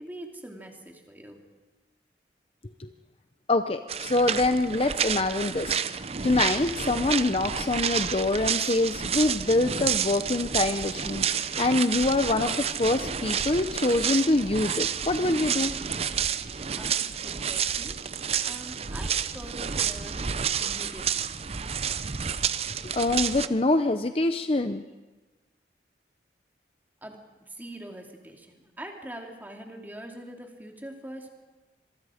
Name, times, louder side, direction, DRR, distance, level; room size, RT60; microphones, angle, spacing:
voice 1, 0.0-1.5 16.7-18.0 18.4-20.2 20.6-21.4 27.0-31.3, right 1 dB, 10° right, 1 dB, 2.7 m, -43 dB
voice 2, 3.5-5.8 6.2-15.8 22.9-24.8, left 2 dB, 35° left, 8 dB, 0.7 m, -25 dB
sound 1, 3.9-23.5, right 7 dB, 35° right, 0.6 m, -30 dB
26.0 x 23.0 x 5.1 m, 1.2 s
head